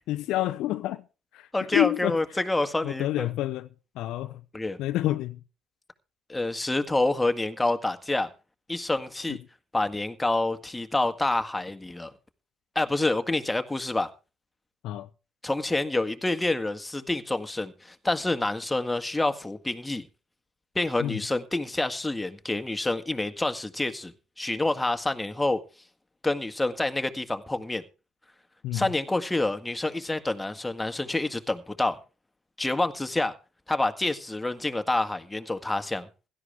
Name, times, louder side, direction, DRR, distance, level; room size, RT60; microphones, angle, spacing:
voice 1, 0.1-1.0 1.3-2.2 2.8-3.7 4.0-4.4 4.8-5.4 9.3-9.4 14.8-15.1 21.0-21.2 28.6-28.9, left 14 dB, 65° left, 0.7 m, -28 dB
voice 2, 1.5-3.3 4.5-4.8 6.3-8.3 8.7-9.4 9.7-12.1 12.7-14.1 15.4-20.0 20.7-25.6 26.2-27.8 28.7-32.0 32.6-33.3 33.7-36.1, left 2 dB, 15° left, 1.8 m, -27 dB
16.5 x 13.0 x 3.5 m
hypercardioid pair, 55°, 0 cm